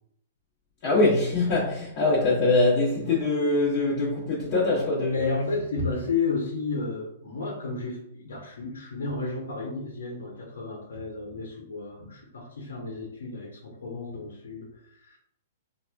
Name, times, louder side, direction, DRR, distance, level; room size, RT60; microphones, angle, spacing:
voice 1, 0.8-5.4, left 2 dB, 40° left, 1.2 m, -23 dB
voice 2, 5.1-15.2, left 4 dB, 80° left, 0.9 m, -32 dB
4.1 x 2.6 x 2.3 m
hypercardioid pair, 135°, 0 cm